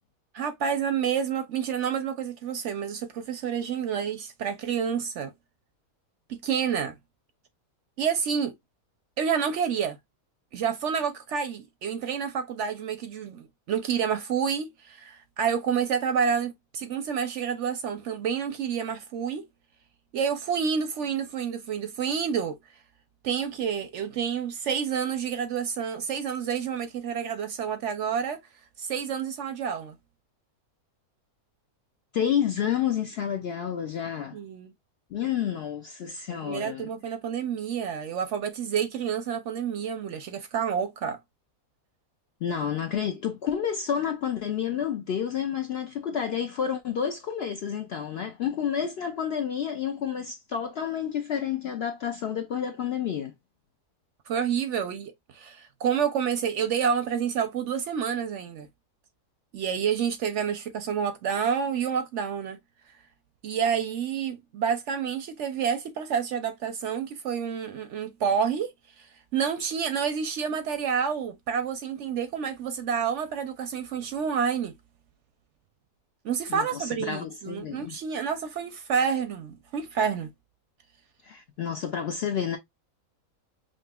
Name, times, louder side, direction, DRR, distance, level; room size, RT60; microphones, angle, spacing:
voice 1, 0.3-5.3 6.3-6.9 8.0-8.5 9.2-10.0 10.5-19.5 20.1-22.6 23.2-28.4 28.8-29.9 34.3-34.7 36.4-41.2 54.3-58.7 59.5-62.6 63.4-68.7 69.0-74.7 76.2-80.3, right 7 dB, 65° right, 0.8 m, -29 dB
voice 2, 32.1-34.4 35.1-36.9 42.4-53.3 76.5-78.0 81.2-82.6, left 8 dB, 65° left, 0.6 m, -30 dB
5.4 x 2.6 x 2.2 m
omnidirectional pair, 1.5 m